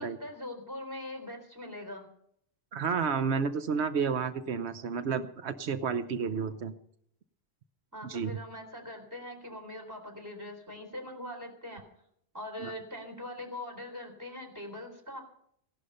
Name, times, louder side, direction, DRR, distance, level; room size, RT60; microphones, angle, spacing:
voice 1, 0.0-2.1 7.9-11.8 12.3-15.2, left 1 dB, 15° right, 2 dB, 3.8 m, -42 dB
voice 2, 2.7-6.7 8.0-8.3 12.6-12.7, right 6 dB, 85° right, 10 dB, 1.1 m, -31 dB
17.0 x 11.5 x 5.5 m, 0.69 s
omnidirectional pair, 1.1 m